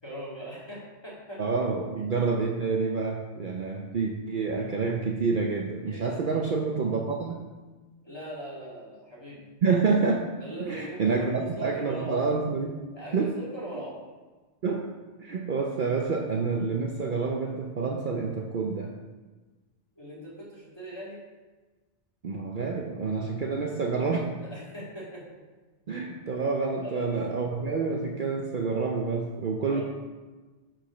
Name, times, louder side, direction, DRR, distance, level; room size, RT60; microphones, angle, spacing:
voice 1, 0.0-1.4 4.5-4.6 5.8-6.2 8.0-9.4 10.4-12.2 12.9-14.0 20.0-21.2 24.4-25.2 26.8-27.3 29.7-29.8, right 1 dB, 20° left, -7 dB, 2.3 m, -40 dB
voice 2, 1.4-7.4 9.6-10.2 10.7-12.8 13.1-13.4 14.6-14.9 15.2-18.9 22.2-24.3 25.9-29.8, right 4 dB, 50° right, 0 dB, 0.7 m, -28 dB
6.3 x 5.0 x 5.7 m, 1.3 s
omnidirectional pair, 1.2 m